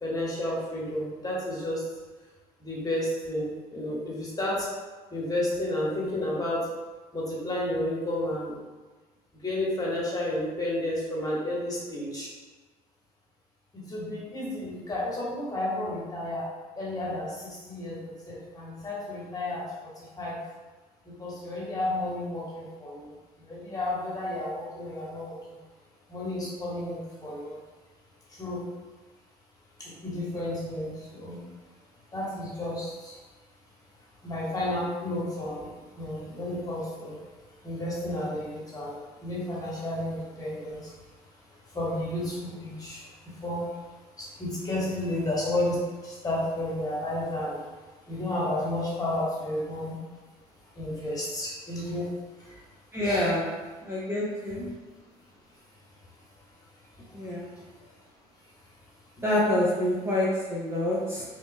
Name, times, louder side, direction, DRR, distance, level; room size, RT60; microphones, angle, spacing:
voice 1, 0.0-1.8 2.6-4.7 5.1-6.6 7.1-8.5 9.4-12.3 13.7-16.5 16.7-20.4 21.0-25.6 26.1-27.6 28.3-28.6 29.8-31.4 32.1-33.2 34.2-37.2 37.6-40.9 41.6-43.9 44.2-47.6 48.1-50.0 50.8-52.1 52.4-52.6 53.0-53.2 57.0-57.9, left 1 dB, 20° left, -6 dB, 1.4 m, -32 dB
voice 2, 52.9-53.5 53.8-54.7 57.1-57.5 59.2-61.2, left 1 dB, 15° right, -6 dB, 0.8 m, -27 dB
5.7 x 2.2 x 2.2 m, 1.3 s
figure-of-eight pair, 60°, 20 cm